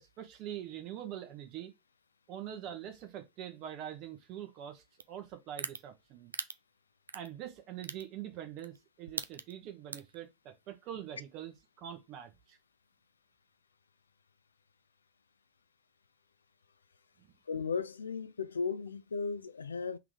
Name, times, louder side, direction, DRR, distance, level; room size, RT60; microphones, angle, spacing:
voice 1, 0.0-1.7 2.3-6.3 7.1-12.6 17.2-17.3, right 10 dB, 50° right, 1.4 m, -44 dB
sound 1, 5.0-5.1 5.6-5.8 6.3-6.5 7.1-7.3 7.8-8.0 8.6-8.8 9.1-9.5 9.9-10.2, right 4 dB, 90° right, 0.4 m, -37 dB
voice 2, 17.5-20.0, left 5 dB, 85° left, 0.4 m, -36 dB
3.8 x 3.3 x 3.8 m
hypercardioid pair, 85°, 0 cm